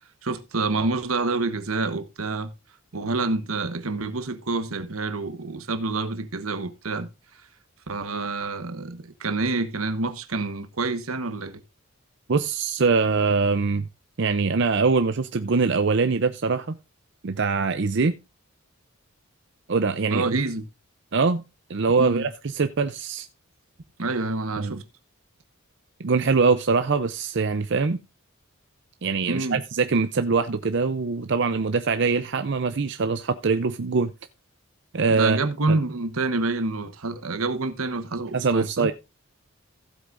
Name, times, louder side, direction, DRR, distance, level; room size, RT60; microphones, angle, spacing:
voice 1, 0.2-2.5 2.9-7.1 7.9-11.6 20.1-20.7 22.0-22.3 24.0-24.8 29.3-29.6 35.1-38.9, right 3 dB, 80° right, 1.2 m, -27 dB
voice 2, 12.3-13.9 14.2-16.8 17.2-18.1 19.7-20.3 21.1-21.4 21.7-23.3 24.6-24.8 26.0-28.0 29.0-34.1 34.9-35.4 35.7-35.8 38.3-38.9, right 4 dB, 55° right, 0.6 m, -23 dB
15.5 x 8.2 x 2.5 m
head